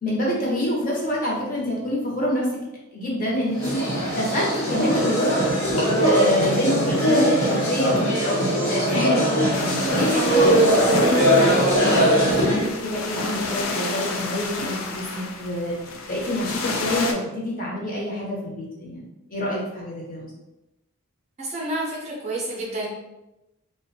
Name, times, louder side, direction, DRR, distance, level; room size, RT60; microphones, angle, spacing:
voice 1, 0.0-2.5 2.9-3.8 4.1-5.4 6.0-8.1 8.7-11.6 12.1-15.7 16.1-19.0 19.3-20.3, left 1 dB, 40° left, -4 dB, 0.7 m, -26 dB
sound 1, 3.5-12.7, equal, 85° left, 0.9 m, -20 dB
sound 2, 9.5-17.1, left 3 dB, 70° left, 0.4 m, -31 dB
voice 2, 21.4-22.9, right 1 dB, 30° right, -3 dB, 0.4 m, -29 dB
2.4 x 2.1 x 2.6 m, 0.97 s
head